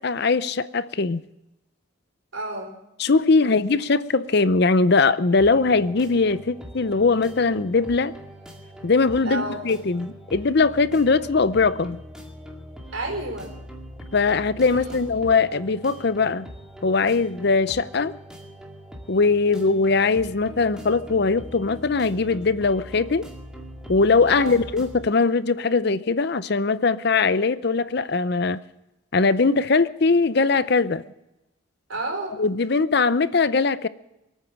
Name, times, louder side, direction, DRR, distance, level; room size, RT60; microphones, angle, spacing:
voice 1, 0.0-1.2 3.0-8.1 8.8-12.0 14.1-16.5 16.8-18.2 19.1-23.3 23.9-28.6 29.1-31.0 32.4-33.9, left 4 dB, 55° left, 0.6 m, -21 dB
voice 2, 2.3-2.8 3.4-3.7 9.2-9.6 12.9-13.6 14.6-14.9 19.5-19.7 24.3-24.6 31.9-32.4, right 2 dB, 80° right, 4.8 m, -31 dB
sound 1, 5.4-25.1, equal, 5° right, 2.1 m, -42 dB
24.0 x 9.1 x 6.4 m
head